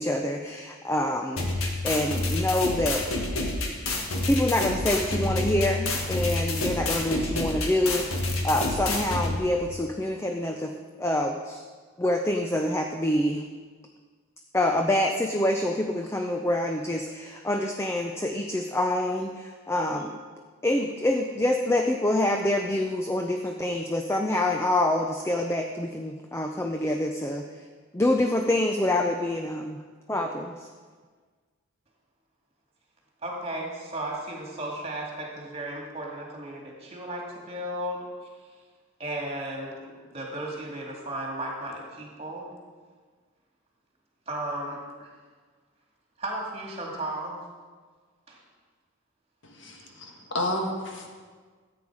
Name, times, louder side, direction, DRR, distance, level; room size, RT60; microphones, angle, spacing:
voice 1, 0.0-1.4 1.8-3.0 4.2-10.7 11.0-11.6 12.0-13.4 14.5-20.2 20.6-27.5 27.9-29.8 30.1-30.7, left 1 dB, 10° left, 3 dB, 0.5 m, -26 dB
sound 1, 1.4-9.4, left 2 dB, 85° left, 1.8 m, -28 dB
voice 2, 33.2-38.1 39.0-42.5 44.3-45.1 46.2-47.4 48.3-48.4 49.7-49.9, right 1 dB, 30° right, -1 dB, 2.2 m, -35 dB
voice 3, 49.4-51.1, left 1 dB, 60° left, 2 dB, 1.6 m, -31 dB
13.5 x 8.7 x 4.9 m, 1.5 s
head